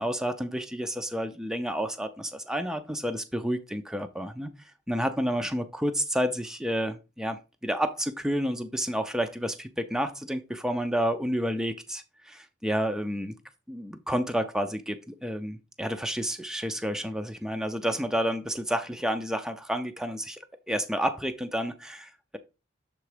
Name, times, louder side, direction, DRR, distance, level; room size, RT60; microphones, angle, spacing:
voice 1, 0.0-4.5 4.9-13.4 13.7-22.4, equal, 5° right, 0.5 m, -30 dB
7.0 x 3.7 x 4.8 m
head